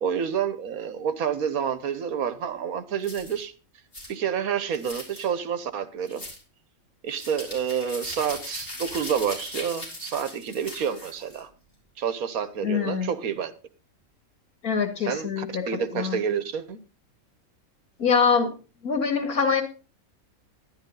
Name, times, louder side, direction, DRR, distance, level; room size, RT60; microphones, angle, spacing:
voice 1, 0.0-3.5 4.1-6.2 7.0-11.5 12.0-13.5 15.0-16.8, right 7 dB, 80° right, 13 dB, 1.4 m, -29 dB
sound 1, 3.0-3.4 3.9-4.1 4.7-5.3 6.1-6.4 7.1-11.4, left 1 dB, 40° left, 4.5 m, -39 dB
voice 2, 12.6-13.1 14.6-15.6 15.9-16.2 18.0-18.5 18.8-19.6, left 6 dB, 90° left, 5 dB, 2.5 m, -24 dB
11.5 x 11.0 x 3.9 m, 0.33 s
omnidirectional pair, 1.5 m